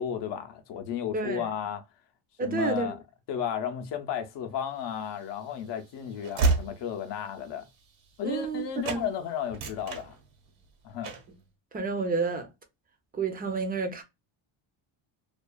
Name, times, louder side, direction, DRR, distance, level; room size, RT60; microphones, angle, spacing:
voice 1, 0.0-1.8 2.4-3.0 3.3-7.6 8.2-10.2 10.8-11.2, left 8 dB, 55° left, 0.6 m, -33 dB
voice 2, 1.1-1.4 2.4-2.9 8.2-9.0 11.7-12.5 13.1-14.0, right 4 dB, 20° right, 0.5 m, -30 dB
Train / Slam, 4.9-8.6 8.8-9.1 9.4-10.6 11.0-11.4, right 3 dB, 65° right, 1.1 m, -31 dB
2.4 x 2.3 x 2.2 m
cardioid pair, 135°, 50 cm